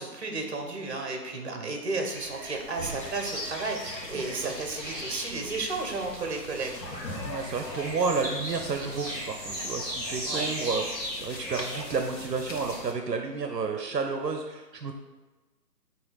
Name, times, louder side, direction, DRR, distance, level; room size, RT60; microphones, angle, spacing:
voice 1, 0.0-6.8 10.2-10.5, right 3 dB, 40° right, 3 dB, 1.1 m, -33 dB
voice 2, 1.3-1.7 4.1-4.3 7.2-14.9, right 4 dB, 75° right, 4 dB, 0.8 m, -31 dB
sound 1, 2.1-12.8, equal, 5° right, 1.6 m, -38 dB
sound 2, 3.0-12.9, left 2 dB, 90° left, 1.2 m, -42 dB
6.2 x 2.9 x 5.6 m, 1.2 s
figure-of-eight pair, 150°, 49 cm